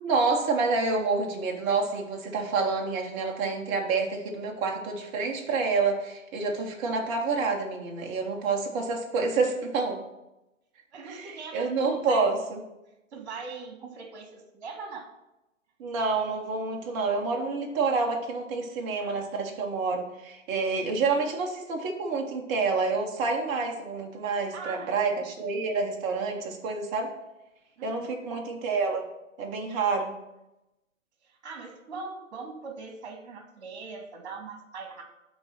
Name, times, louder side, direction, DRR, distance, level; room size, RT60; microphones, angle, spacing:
voice 1, 0.0-10.0 11.0-12.6 15.8-27.1 27.8-29.0 29.4-30.1, right 4 dB, 15° right, 1 dB, 0.9 m, -28 dB
voice 2, 10.9-12.3 13.1-15.1 19.0-19.2 24.5-25.3 27.8-28.3 31.4-35.0, right 4 dB, 35° right, 3 dB, 2.1 m, -41 dB
11.0 x 4.0 x 5.7 m, 0.94 s
figure-of-eight pair, 140°, 39 cm